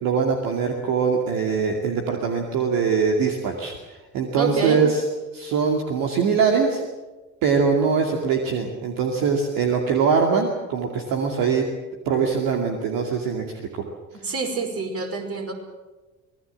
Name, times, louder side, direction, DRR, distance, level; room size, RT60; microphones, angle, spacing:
voice 1, 0.0-5.1 5.3-6.8 7.4-11.7 12.1-13.8, right 5 dB, 55° right, 2 dB, 2.5 m, -22 dB
voice 2, 4.3-4.8 14.2-15.5, right 5 dB, 35° right, 4 dB, 5.0 m, -27 dB
25.0 x 19.5 x 7.4 m, 1.2 s
figure-of-eight pair, 55°, 40 cm